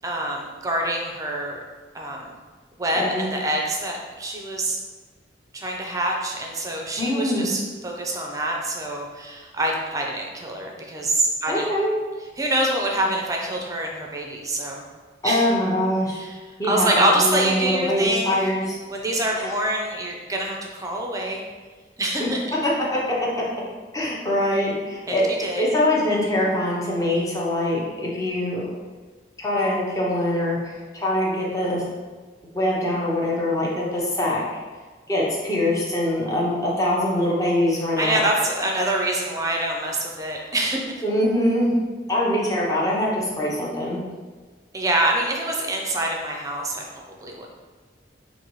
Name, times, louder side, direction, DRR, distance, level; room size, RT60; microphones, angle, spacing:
voice 1, 0.0-1.6 1.9-2.3 2.8-4.8 5.5-11.7 12.4-14.8 15.2-15.4 16.1-16.3 16.7-18.5 18.9-21.4 22.0-22.4 25.1-25.6 38.0-40.8 44.7-47.5, right 1 dB, 20° right, 0 dB, 0.5 m, -25 dB
voice 2, 2.9-3.2 7.0-7.5 11.5-11.9 15.2-16.2 16.6-18.8 19.4-19.5 22.2-22.3 22.6-23.0 23.9-28.6 29.4-31.9 32.5-34.4 35.1-38.2 41.0-41.7 42.1-44.0, left 1 dB, 20° left, -5 dB, 0.8 m, -23 dB
5.3 x 2.6 x 3.1 m, 1.4 s
head